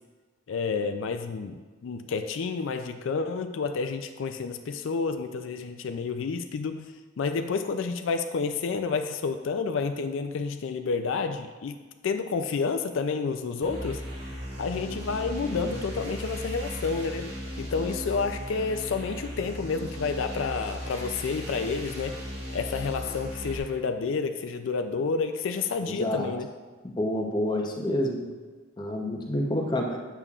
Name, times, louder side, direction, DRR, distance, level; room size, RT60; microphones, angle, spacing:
voice 1, 0.5-11.7 12.0-14.0 14.6-26.5, left 4 dB, 75° left, 7 dB, 0.4 m, -30 dB
sound 1, 13.6-23.6, equal, 50° right, 2.2 m, -37 dB
voice 2, 26.8-28.2 28.8-30.0, left 1 dB, 20° left, 0 dB, 0.7 m, -28 dB
8.8 x 6.8 x 2.4 m, 1.4 s
head